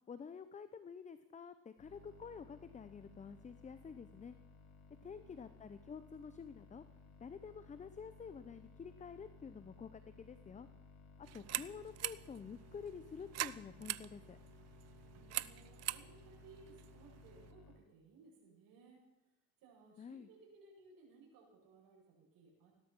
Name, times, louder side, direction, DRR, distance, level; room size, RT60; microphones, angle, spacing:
voice 1, 0.1-4.4 5.0-6.8 7.2-10.7 11.2-14.4 20.0-20.3, left 6 dB, 20° left, 12 dB, 0.8 m, -49 dB
sound 1, 1.8-17.8, left 4 dB, 75° left, 3.8 m, -60 dB
voice 2, 5.0-5.4 11.4-11.6 15.1-19.0 19.6-22.7, right 4 dB, 65° right, -1 dB, 7.9 m, -62 dB
sound 2, 11.2-17.5, right 14 dB, 45° right, 0.7 m, -44 dB
17.5 x 12.5 x 6.2 m, 0.97 s
supercardioid pair, 105°, 37 cm